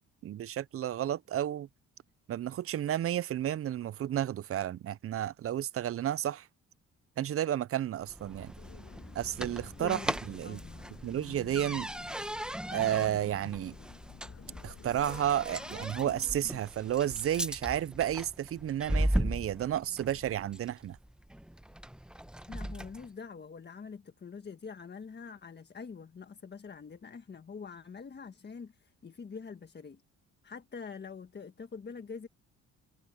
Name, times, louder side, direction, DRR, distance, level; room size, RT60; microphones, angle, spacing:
voice 1, 0.0-1.7 2.3-6.5 7.2-8.5 9.1-10.0 10.3-10.6 11.0-11.9 12.7-13.7 14.6-21.0, right 11 dB, 50° right, 0.5 m, -32 dB
sound 1, 8.0-23.1, right 1 dB, 5° right, 0.9 m, -38 dB
sound 2, 8.5-16.6, left 7 dB, 50° left, 5.8 m, -51 dB
voice 2, 9.8-10.1 10.4-10.6 22.5-30.0 30.4-32.3, left 5 dB, 35° left, 1.5 m, -45 dB
cardioid pair, 90°, 30 cm